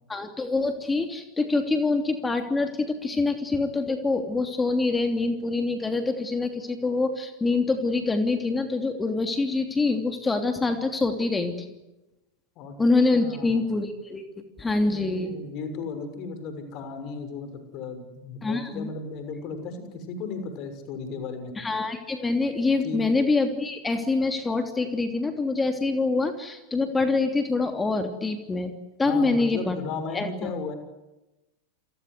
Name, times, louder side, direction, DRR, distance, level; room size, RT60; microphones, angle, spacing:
voice 1, 0.1-11.7 12.8-14.2 14.6-15.4 18.4-18.9 21.6-28.7 29.0-29.8 30.1-30.5, left 3 dB, 10° left, 6 dB, 3.0 m, -25 dB
voice 2, 13.1-13.6 14.8-21.5 22.8-23.0 29.0-30.7, left 4 dB, 40° left, 9 dB, 6.3 m, -35 dB
29.5 x 25.0 x 8.1 m, 1.0 s
figure-of-eight pair, 90°, 0 cm